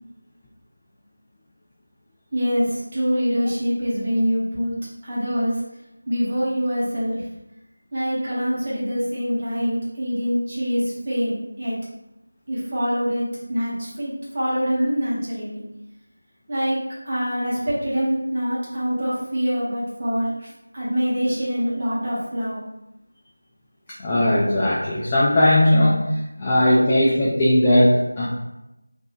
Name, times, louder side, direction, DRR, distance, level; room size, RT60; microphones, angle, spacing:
voice 1, 2.3-4.8 5.0-5.6 6.1-7.2 7.9-11.8 12.5-15.6 16.5-22.6, equal, 30° right, -8 dB, 1.0 m, -25 dB
voice 2, 24.0-28.3, left 1 dB, 15° left, -7 dB, 0.3 m, -18 dB
3.4 x 2.5 x 2.3 m, 0.91 s
figure-of-eight pair, 170°, 0 cm